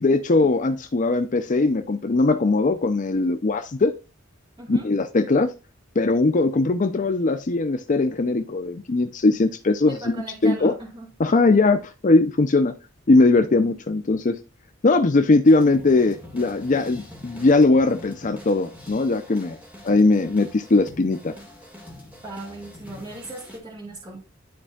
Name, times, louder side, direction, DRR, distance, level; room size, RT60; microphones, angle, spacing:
voice 1, 0.0-3.9 4.7-5.5 6.0-10.2 10.4-10.7 11.2-12.7 13.1-14.4 14.8-19.6 19.8-21.3, left 3 dB, 40° left, 0.5 m, -20 dB
voice 2, 9.9-11.1 22.2-24.2, right 2 dB, 25° right, 2.5 m, -38 dB
sound 1, 15.4-23.6, left 1 dB, 5° right, 1.9 m, -44 dB
12.5 x 4.2 x 2.4 m
head